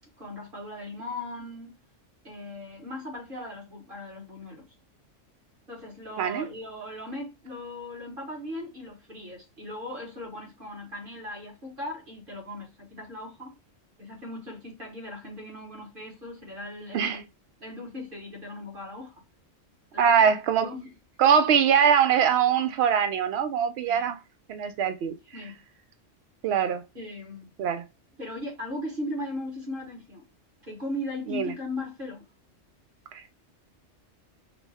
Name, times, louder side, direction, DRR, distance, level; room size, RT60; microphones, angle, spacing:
voice 1, 0.2-1.8 2.2-4.7 5.7-13.5 14.0-17.2 17.6-19.2 19.9-20.9 23.8-24.1 25.3-25.6 26.9-27.5 28.2-30.2 30.6-32.3, left 1 dB, 45° right, 1.7 m, -38 dB
voice 2, 20.0-20.7 21.2-24.2 24.5-25.2 26.4-26.8 27.6-27.8 31.3-31.5 33.1-33.3, right 7 dB, 65° right, 0.8 m, -22 dB
5.0 x 2.1 x 3.4 m
omnidirectional pair, 1.3 m